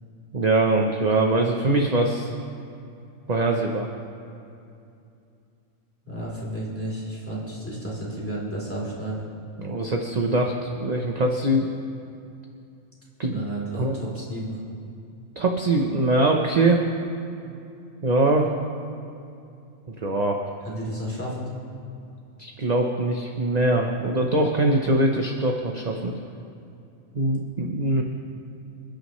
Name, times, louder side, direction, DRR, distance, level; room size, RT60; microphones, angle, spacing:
voice 1, 0.3-2.3 3.3-3.9 9.6-11.7 13.2-13.4 13.8-14.0 15.4-16.8 18.0-18.5 20.0-20.4 22.4-26.1 27.1-28.0, right 2 dB, 35° right, 1 dB, 0.9 m, -22 dB
voice 2, 6.0-9.2 13.3-14.6 20.6-21.5, right 1 dB, 10° left, -6 dB, 3.5 m, -32 dB
27.5 x 10.5 x 3.2 m, 2.6 s
omnidirectional pair, 1.5 m